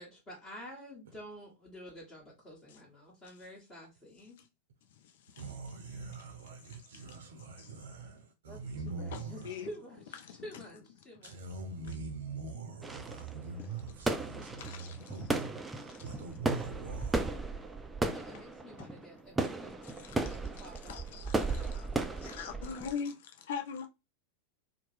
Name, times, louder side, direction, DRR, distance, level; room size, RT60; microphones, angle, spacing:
voice 1, 0.0-4.4 8.4-8.6 8.8-11.4 18.1-20.1 20.6-22.3, equal, 25° left, 1.3 m, -50 dB
voice 2, 5.4-9.6 11.2-17.7, right 4 dB, 60° right, 0.5 m, -43 dB
voice 3, 9.0-9.7 10.2-10.4 14.6-15.0 18.3-18.4 18.8-18.9 19.8-20.4 20.8-21.9 22.2-23.9, left 6 dB, 55° left, 0.4 m, -41 dB
sound 1, 12.8-22.9, right 3 dB, 10° right, 0.3 m, -36 dB
2.8 x 2.1 x 3.1 m
figure-of-eight pair, 90°, 0 cm